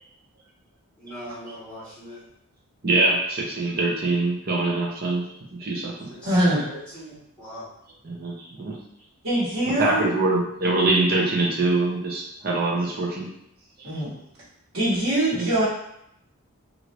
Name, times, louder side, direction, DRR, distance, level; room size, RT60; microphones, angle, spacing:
voice 1, 1.0-2.2 6.1-7.7, equal, 5° left, -13 dB, 1.4 m, -40 dB
voice 2, 2.8-6.1 8.0-8.8 9.8-13.3 13.8-14.0 15.3-15.5, right 2 dB, 45° right, -2 dB, 0.6 m, -24 dB
voice 3, 6.2-6.6 9.2-10.0 13.8-14.1 14.7-15.6, right 1 dB, 85° right, -11 dB, 1.3 m, -22 dB
3.0 x 2.6 x 3.0 m, 0.76 s
head